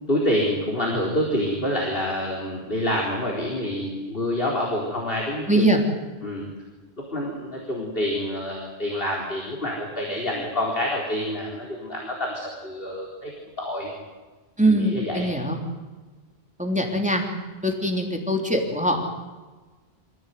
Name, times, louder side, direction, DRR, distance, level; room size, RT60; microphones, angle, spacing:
voice 1, 0.1-5.7 6.2-6.4 7.1-13.3 13.6-13.9 14.6-15.2, left 1 dB, 60° left, -2 dB, 4.4 m, -27 dB
voice 2, 5.5-5.8 14.6-15.6 16.6-17.2 17.6-19.0, right 1 dB, 5° right, 1 dB, 3.4 m, -22 dB
26.0 x 16.0 x 9.5 m, 1.3 s
omnidirectional pair, 1.1 m